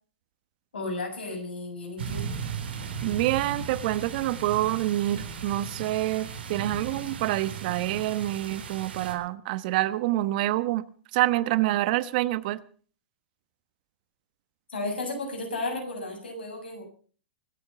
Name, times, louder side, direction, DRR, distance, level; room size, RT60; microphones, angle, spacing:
voice 1, 0.7-2.3 14.7-16.8, left 2 dB, 85° left, 2 dB, 7.6 m, -33 dB
sound 1, 2.0-9.1, right 6 dB, 75° right, 3.9 m, -36 dB
voice 2, 3.0-10.8 11.1-12.6, right 16 dB, 55° right, 16 dB, 1.1 m, -27 dB
24.5 x 8.8 x 5.8 m, 0.43 s
hypercardioid pair, 115°, 6 cm